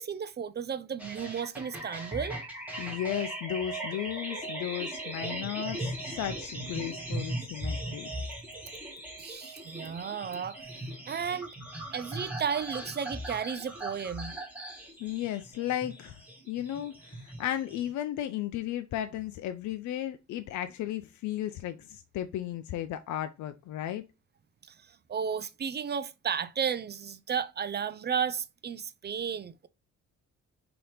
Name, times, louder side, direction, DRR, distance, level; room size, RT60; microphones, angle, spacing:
voice 1, 0.0-2.4 9.2-11.5 11.9-14.3 24.6-29.7, right 7 dB, 35° right, 0.5 m, -34 dB
sound 1, 1.0-17.9, right 1 dB, 5° right, 1.7 m, -39 dB
voice 2, 2.8-8.1 15.0-24.0, left 12 dB, 75° left, 0.5 m, -35 dB
5.4 x 2.9 x 3.3 m
cardioid pair, 90°, 30 cm